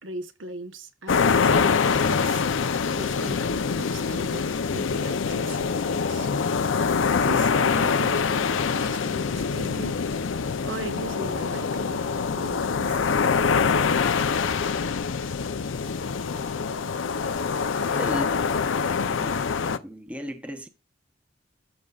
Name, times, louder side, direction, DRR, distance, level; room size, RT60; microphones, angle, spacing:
voice 1, 0.0-2.4 3.0-4.5 4.7-6.3 7.2-10.0 10.7-13.2, right 1 dB, 75° right, 1.0 m, -39 dB
sound 1, 1.1-19.8, left 5 dB, 80° left, 0.5 m, -24 dB
voice 2, 17.9-18.4 19.0-19.4 19.8-20.7, equal, 5° right, 0.8 m, -35 dB
13.5 x 5.2 x 2.4 m
head